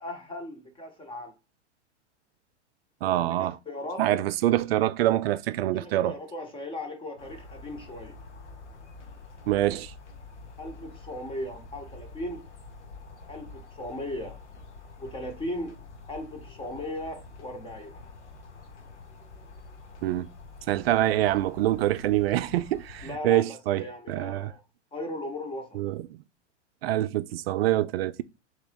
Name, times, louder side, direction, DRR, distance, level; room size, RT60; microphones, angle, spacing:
voice 1, 0.0-1.3 3.1-4.0 5.7-8.1 10.6-12.4 13.3-14.4 15.0-15.8 16.1-17.9 23.0-24.6 24.9-25.7, left 1 dB, 15° left, 0.9 m, -37 dB
voice 2, 3.0-3.6 4.0-6.1 9.5-9.9 20.0-20.3 20.7-24.5 25.8-26.1 26.8-28.2, right 14 dB, 60° right, 0.5 m, -25 dB
sound 1, 7.2-23.2, left 3 dB, 75° left, 1.0 m, -47 dB
3.4 x 3.1 x 4.8 m
hypercardioid pair, 100°, 35 cm